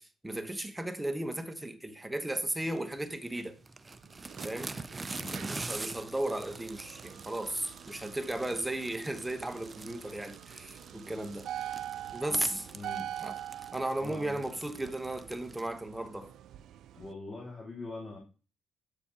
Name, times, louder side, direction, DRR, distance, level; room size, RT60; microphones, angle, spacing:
voice 1, 0.0-3.6 4.4-4.8 5.3-11.7 12.1-12.6 13.2-13.3 13.7-16.3, right 1 dB, 10° right, 1.0 m, -35 dB
sound 1, 2.6-15.7, right 3 dB, 25° right, 0.5 m, -45 dB
sound 2, 4.0-17.1, right 11 dB, 80° right, 0.3 m, -45 dB
voice 2, 12.4-13.1 14.0-14.5 16.9-18.2, left 3 dB, 35° left, 2.2 m, -43 dB
8.1 x 7.1 x 2.9 m
cardioid pair, 90°, 0 cm